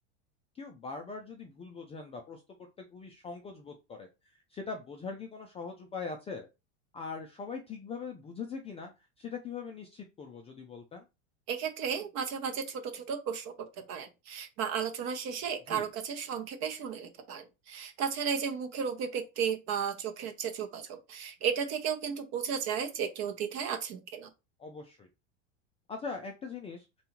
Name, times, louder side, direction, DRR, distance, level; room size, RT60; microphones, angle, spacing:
voice 1, 0.5-2.4 2.8-6.5 6.9-8.9 9.2-11.0 15.7-15.9 24.6-25.1 25.9-26.9, left 5 dB, 15° left, 0.3 m, -41 dB
voice 2, 11.5-13.5 13.9-24.3, right 7 dB, 45° right, 0.6 m, -34 dB
2.7 x 2.3 x 2.9 m
hypercardioid pair, 95°, 37 cm